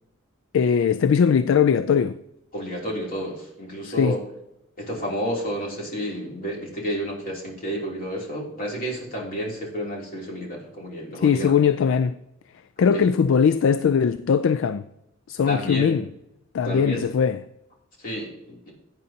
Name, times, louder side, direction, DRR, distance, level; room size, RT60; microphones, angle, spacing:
voice 1, 0.5-2.2 3.8-4.2 11.2-12.2 12.8-14.9 15.3-16.0 16.5-17.4, left 7 dB, 65° left, 0.3 m, -20 dB
voice 2, 2.5-4.2 4.8-11.5 12.8-13.1 15.5-16.0 16.6-17.1 18.0-18.7, equal, 45° left, 3.0 m, -31 dB
16.0 x 9.1 x 2.8 m
head